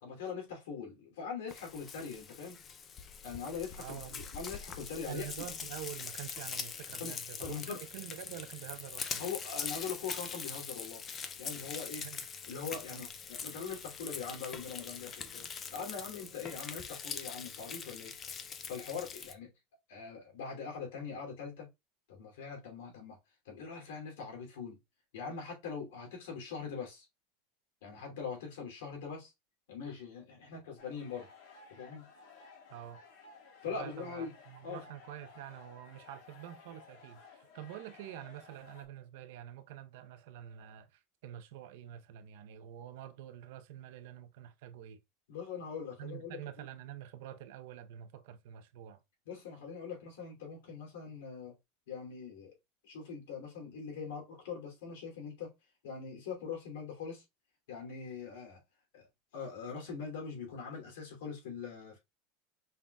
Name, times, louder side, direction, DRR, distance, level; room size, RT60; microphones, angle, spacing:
voice 1, 0.0-2.6 3.2-4.0 4.3-5.2 7.0-7.1 7.4-7.8 9.2-11.0 11.4-12.0 12.5-15.5 15.7-18.1 18.7-19.5 19.9-21.7 22.1-23.2 23.4-24.8 25.1-27.1 27.8-29.3 29.7-31.3 31.7-32.0 33.6-34.3 34.6-34.8 45.3-46.4 49.3-51.5 51.9-52.5 52.8-55.5 55.8-57.2 57.7-58.6 58.9-59.1 59.3-62.0, left 6 dB, 90° left, 2.6 m, -42 dB
Frying (food), 1.5-19.3, left 6 dB, 20° left, 0.4 m, -43 dB
voice 2, 3.8-4.2 5.1-9.3 12.0-12.3 12.9-13.1 32.7-33.0 33.7-45.0 46.0-49.0, right 11 dB, 60° right, 0.7 m, -47 dB
sound 1, 30.8-38.8, left 4 dB, 55° left, 1.6 m, -56 dB
5.6 x 3.7 x 2.3 m
supercardioid pair, 180°, 0 cm